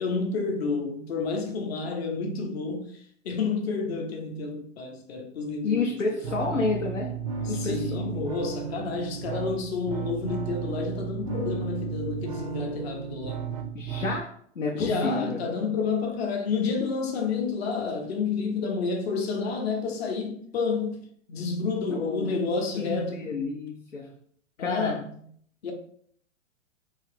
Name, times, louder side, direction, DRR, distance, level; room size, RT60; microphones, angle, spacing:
voice 1, 0.0-6.7 7.4-13.5 14.7-23.4 24.6-25.2 25.6-25.7, left 4 dB, 55° left, 0.8 m, -30 dB
voice 2, 5.6-7.1 7.4-8.3 13.7-15.5 21.9-22.4 22.8-24.1 24.6-25.0, left 3 dB, 85° left, 0.6 m, -30 dB
sound 1, 6.2-14.2, right 6 dB, 30° right, 0.4 m, -34 dB
3.2 x 2.8 x 3.2 m
figure-of-eight pair, 105°, 38 cm